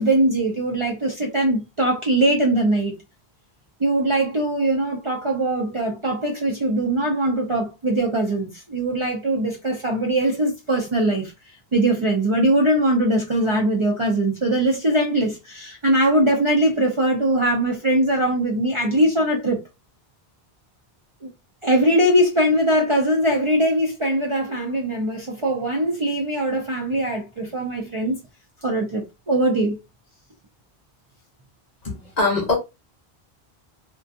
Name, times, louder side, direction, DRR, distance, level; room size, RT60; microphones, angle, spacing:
voice 1, 0.0-3.0 3.8-11.3 11.7-19.6 21.2-21.3 21.6-28.2 28.6-29.8, right 1 dB, 40° right, 0.5 m, -21 dB
voice 2, 31.8-32.6, left 3 dB, 45° left, 0.8 m, -22 dB
2.4 x 2.2 x 2.5 m
omnidirectional pair, 1.1 m